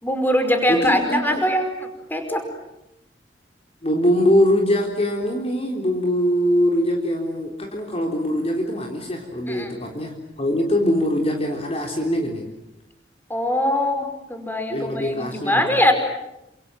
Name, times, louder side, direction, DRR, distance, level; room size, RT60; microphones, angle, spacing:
voice 1, 0.0-1.7 2.1-2.5 9.5-9.7 13.3-15.9, left 1 dB, 10° left, 6 dB, 5.0 m, -22 dB
voice 2, 0.7-1.4 3.8-12.5 14.7-15.8, equal, 35° left, 2 dB, 3.7 m, -22 dB
29.0 x 27.0 x 7.7 m, 0.89 s
head